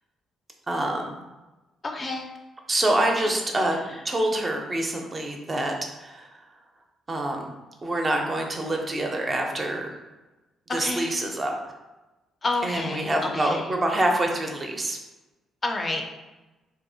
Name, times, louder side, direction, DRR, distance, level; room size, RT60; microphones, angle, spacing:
voice 1, 0.7-1.1 2.7-5.7 6.0-6.3 7.1-7.5 7.8-9.9 10.7-11.5 12.6-15.0, right 1 dB, 30° right, 2 dB, 0.4 m, -26 dB
voice 2, 1.8-2.3 3.2-3.3 10.7-11.1 12.4-13.7 15.6-16.0, left 2 dB, 35° left, 2 dB, 0.4 m, -29 dB
2.6 x 2.0 x 2.6 m, 1.1 s
cardioid pair, 90°, 0 cm